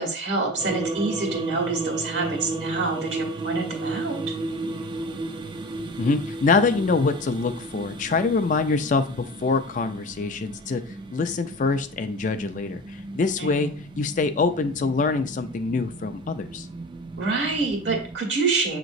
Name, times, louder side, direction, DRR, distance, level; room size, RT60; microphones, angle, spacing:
voice 1, 0.0-4.2 13.4-13.9 17.2-18.8, right 3 dB, 80° right, 1 dB, 1.4 m, -27 dB
sound 1, 0.6-18.2, right 3 dB, 25° right, 0.3 m, -34 dB
voice 2, 6.0-10.8 11.1-16.7, left 4 dB, 45° left, 9 dB, 0.4 m, -24 dB
7.1 x 3.0 x 2.5 m, 0.42 s
head